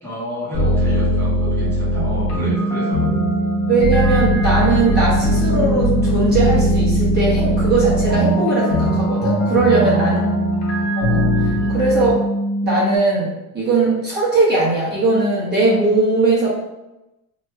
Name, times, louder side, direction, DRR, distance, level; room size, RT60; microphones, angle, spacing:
voice 1, 0.0-3.0 9.7-10.7 11.5-11.8, left 1 dB, 5° left, -9 dB, 0.9 m, -30 dB
sound 1, 0.5-12.1, equal, 40° left, 0.9 m, -20 dB
sound 2, 2.5-13.0, equal, 65° left, 0.7 m, -23 dB
voice 2, 3.7-10.2 11.0-12.2 12.6-16.6, right 3 dB, 25° right, -7 dB, 0.9 m, -19 dB
3.0 x 2.7 x 2.3 m, 0.97 s
supercardioid pair, 130°, 43 cm